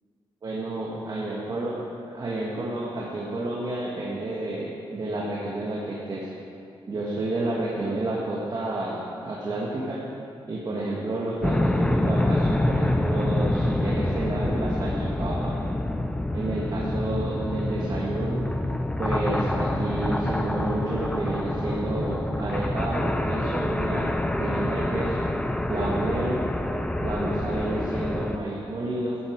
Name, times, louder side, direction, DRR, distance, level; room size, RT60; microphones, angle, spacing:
voice 1, 0.4-1.8 2.1-6.3 6.9-10.0 10.5-15.6 16.3-18.5 19.0-25.3 25.7-26.4 27.0-29.2, right 2 dB, 50° right, -5 dB, 1.8 m, -30 dB
sound 1, 11.4-28.4, left 1 dB, 10° left, 0.6 m, -26 dB
13.5 x 11.0 x 4.7 m, 2.6 s
cardioid pair, 100°, 9 cm